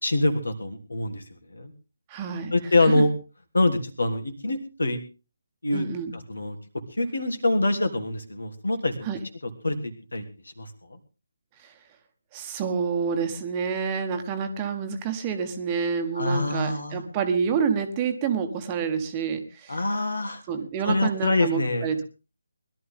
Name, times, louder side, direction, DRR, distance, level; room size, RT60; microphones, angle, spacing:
voice 1, 0.0-1.2 1.5-1.7 2.5-3.1 3.5-5.0 5.6-6.5 7.0-9.1 9.6-10.2 10.6-11.0 16.1-17.0 19.7-20.4 20.8-21.9, left 2 dB, 70° left, 6 dB, 3.1 m, -25 dB
voice 2, 2.1-2.5 5.7-6.1 9.0-9.2 11.6-11.7 12.3-19.8 20.5-22.0, right 6 dB, 20° right, 6 dB, 1.5 m, -28 dB
21.5 x 12.5 x 3.7 m, 0.33 s
figure-of-eight pair, 150°, 0 cm